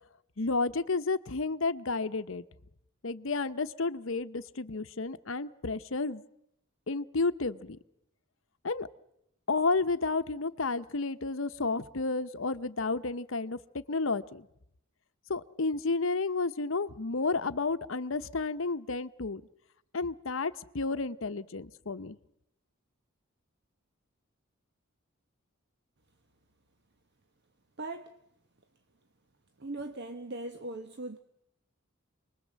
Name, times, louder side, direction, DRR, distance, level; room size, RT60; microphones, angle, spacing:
voice 1, 0.4-2.4 3.0-6.2 6.9-7.8 8.6-8.9 9.5-14.5 15.3-19.4 19.9-22.2, left 3 dB, 65° left, 12 dB, 0.9 m, -31 dB
voice 2, 27.8-28.1 29.6-31.2, right 2 dB, 55° right, 7 dB, 1.1 m, -39 dB
28.0 x 21.0 x 7.5 m, 0.80 s
head